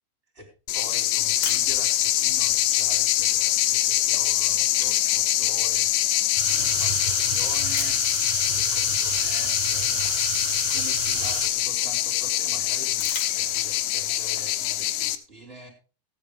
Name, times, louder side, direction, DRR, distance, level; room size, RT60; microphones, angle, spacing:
voice 1, 0.3-5.9 6.5-8.0 8.4-15.7, right 1 dB, 15° right, 3 dB, 2.8 m, -44 dB
sound 1, 0.7-15.2, left 14 dB, 85° left, 3.0 m, -24 dB
sound 2, 1.4-2.4 3.8-4.0 4.3-6.0 6.6-6.7 7.7-8.3 9.8-9.9 10.2-11.8 12.9-14.0, left 4 dB, 40° left, 1.7 m, -39 dB
sound 3, 6.4-11.5, right 14 dB, 90° right, 3.1 m, -32 dB
16.0 x 9.4 x 3.4 m, 0.33 s
omnidirectional pair, 5.1 m